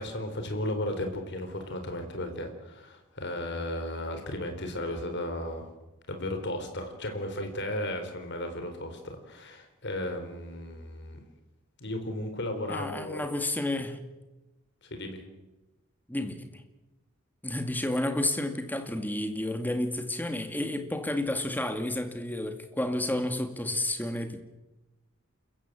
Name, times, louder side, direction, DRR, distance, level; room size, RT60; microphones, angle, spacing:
voice 1, 0.0-5.7 6.1-11.2 11.8-13.2 14.9-15.2, left 1 dB, 60° left, 4.2 m, -35 dB
voice 2, 12.7-14.0 16.1-16.6 17.4-24.4, left 1 dB, 10° left, 2.2 m, -31 dB
28.5 x 15.5 x 7.6 m
head